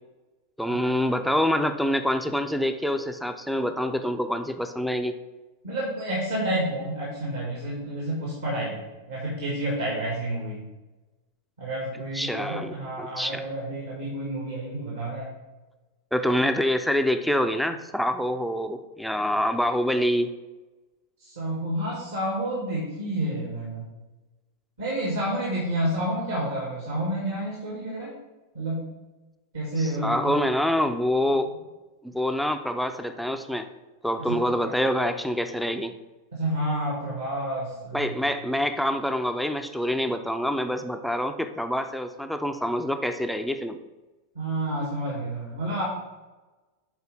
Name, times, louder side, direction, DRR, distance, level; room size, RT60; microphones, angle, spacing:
voice 1, 0.6-5.1 12.1-13.4 16.1-20.3 29.8-31.5 32.0-33.7 34.0-35.9 37.9-43.8, equal, ahead, 6 dB, 0.4 m, -26 dB
voice 2, 5.6-8.8 9.1-10.6 11.6-15.3 21.2-23.9 24.8-28.1 28.5-28.9 29.5-30.4 34.3-34.4 34.6-34.8 36.3-38.2 44.4-45.8, right 1 dB, 70° right, -4 dB, 2.1 m, -29 dB
6.9 x 4.0 x 5.2 m, 1.1 s
figure-of-eight pair, 90°, 0 cm